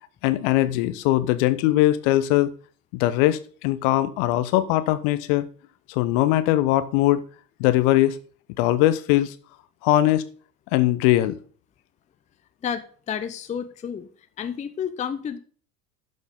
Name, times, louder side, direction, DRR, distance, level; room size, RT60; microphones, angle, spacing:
voice 1, 0.2-2.5 2.9-5.5 5.9-7.2 7.6-8.2 8.6-9.3 9.8-10.3 10.7-11.4, left 15 dB, 45° left, 1.0 m, -20 dB
voice 2, 12.6-14.1 14.4-15.4, left 8 dB, 15° left, 0.7 m, -30 dB
12.0 x 6.3 x 3.6 m
figure-of-eight pair, 80°, 48 cm